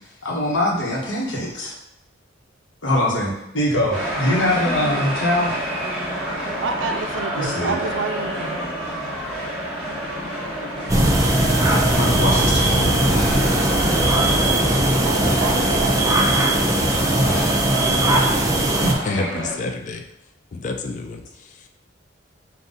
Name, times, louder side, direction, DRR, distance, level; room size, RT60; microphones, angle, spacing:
voice 1, 0.2-1.7 2.8-5.6 7.4-7.8 12.0-13.7 17.1-17.6 18.8-19.3, left 1 dB, 90° left, -3 dB, 1.2 m, -23 dB
sound 1, 3.9-19.5, right 1 dB, 5° left, 1.0 m, -28 dB
voice 2, 6.6-8.6 15.0-16.2, right 4 dB, 75° right, 5 dB, 0.4 m, -28 dB
sound 2, 10.9-18.9, right 1 dB, 20° right, 0.5 m, -19 dB
voice 3, 19.0-20.0 20.5-21.7, left 3 dB, 40° left, 4 dB, 0.4 m, -29 dB
4.0 x 2.5 x 3.7 m, 0.82 s
head